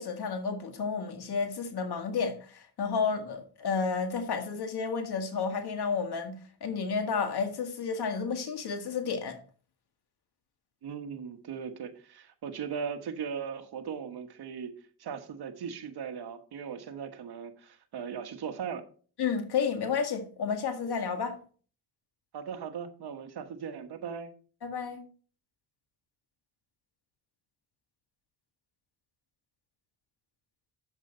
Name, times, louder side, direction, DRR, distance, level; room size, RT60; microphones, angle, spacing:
voice 1, 0.0-9.4 19.2-21.4 24.6-25.0, left 5 dB, 65° left, 1.9 m, -31 dB
voice 2, 10.8-18.8 22.3-24.3, right 7 dB, 65° right, 1.3 m, -38 dB
7.9 x 7.4 x 3.9 m
cardioid pair, 70°, 41 cm